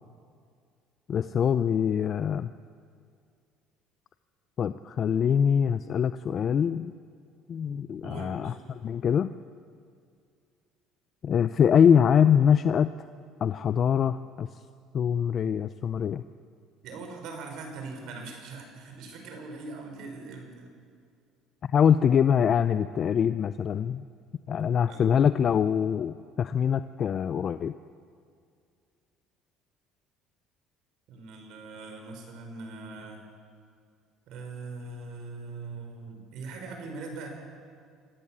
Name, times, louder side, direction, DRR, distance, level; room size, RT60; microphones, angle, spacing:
voice 1, 1.1-2.5 4.6-6.9 7.5-8.5 8.8-9.3 11.2-12.9 13.4-14.5 14.9-16.2 21.7-24.0 24.5-27.7, left 8 dB, 40° left, 12 dB, 0.5 m, -24 dB
voice 2, 8.0-8.6 16.8-20.7 24.5-25.1 31.1-33.2 34.3-37.3, right 3 dB, 65° right, 4 dB, 5.2 m, -41 dB
25.5 x 15.0 x 7.5 m, 2.3 s
cardioid pair, 115°, 0 cm